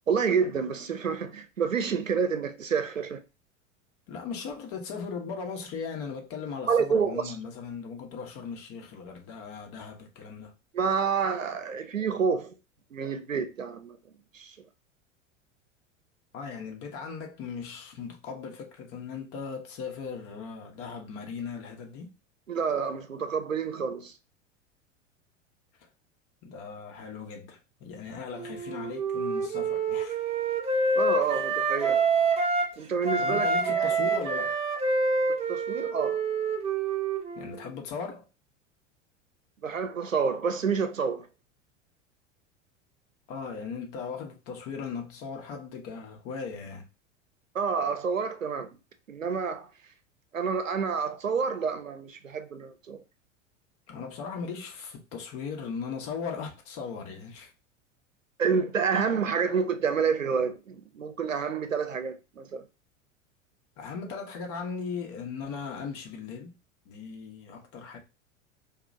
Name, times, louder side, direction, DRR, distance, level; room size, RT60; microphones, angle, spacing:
voice 1, 0.1-3.2 6.7-7.4 10.7-12.5 12.9-14.0 14.3-14.5 22.5-24.1 31.0-32.1 32.8-33.5 33.8-34.3 35.5-36.2 39.6-41.3 47.5-48.7 49.1-49.7 50.3-53.0 58.4-62.6, right 6 dB, 85° right, 0.6 m, -28 dB
voice 2, 4.1-10.5 16.3-22.1 26.4-30.2 31.3-31.4 33.2-34.6 37.3-38.3 43.3-46.9 53.9-57.5 63.8-66.6 66.8-68.0, left 5 dB, 40° left, 1.0 m, -38 dB
Wind instrument woodwind instrument, 28.3-32.7 33.0-37.6, right 3 dB, 15° right, 0.8 m, -27 dB
4.9 x 2.3 x 2.6 m
figure-of-eight pair, 85°, 38 cm